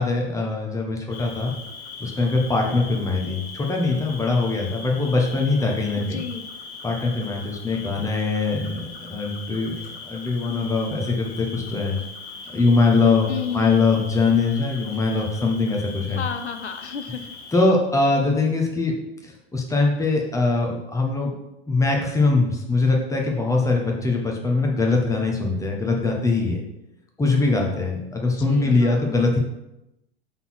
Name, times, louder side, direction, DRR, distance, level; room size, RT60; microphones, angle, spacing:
voice 1, 0.0-1.5 2.0-6.2 6.8-9.7 10.0-12.0 12.5-13.3 13.5-16.2 17.5-18.9 19.5-21.3 21.7-26.6 27.2-29.4, left 3 dB, 10° left, 0 dB, 1.4 m, -22 dB
Cricket, 1.1-17.7, left 4 dB, 65° left, 2.1 m, -40 dB
voice 2, 6.1-6.4 13.3-14.0 16.1-17.2 28.3-29.3, left 6 dB, 90° left, 8 dB, 0.6 m, -32 dB
5.5 x 4.1 x 6.0 m, 0.89 s
hypercardioid pair, 95°, 33 cm